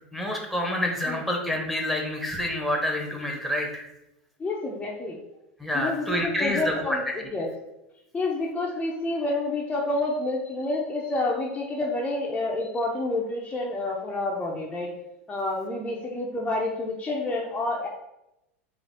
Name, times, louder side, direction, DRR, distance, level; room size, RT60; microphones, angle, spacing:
voice 1, 0.1-3.8 5.6-7.0, left 1 dB, ahead, 0 dB, 1.0 m, -28 dB
voice 2, 4.4-5.2 5.7-7.5 8.1-14.9 15.3-17.9, left 2 dB, 15° left, -3 dB, 0.7 m, -29 dB
3.9 x 3.3 x 3.6 m, 0.90 s
hypercardioid pair, 100°, 7 cm